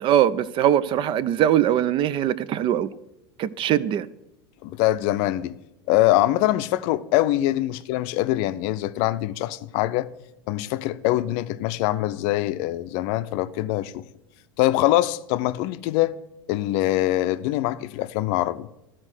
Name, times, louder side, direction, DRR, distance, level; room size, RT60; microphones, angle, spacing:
voice 1, 0.0-2.9 3.4-4.1, right 11 dB, 40° right, 0.5 m, -21 dB
voice 2, 4.6-5.5 5.9-10.1 10.5-14.0 14.6-16.1 16.5-18.7, left 15 dB, 55° left, 0.5 m, -23 dB
12.5 x 4.4 x 6.2 m
hypercardioid pair, 90°, 13 cm